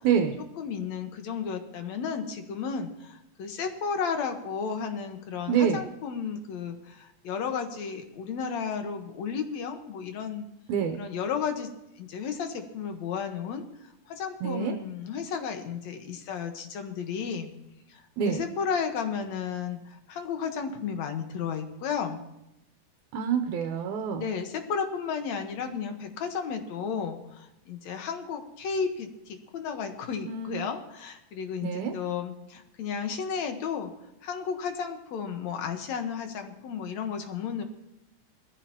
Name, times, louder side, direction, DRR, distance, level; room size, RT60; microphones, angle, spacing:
voice 1, 0.0-0.4 5.5-5.8 10.7-11.0 14.4-14.8 18.2-18.4 23.1-24.3 30.3-30.5 31.6-31.9, right 7 dB, 80° right, 5 dB, 2.2 m, -26 dB
voice 2, 0.6-10.5 10.9-11.7 12.0-13.6 14.1-17.5 17.9-22.2 24.2-33.9 34.2-37.6, left 6 dB, 70° left, 6 dB, 2.5 m, -33 dB
21.0 x 14.0 x 2.9 m, 0.87 s
omnidirectional pair, 3.4 m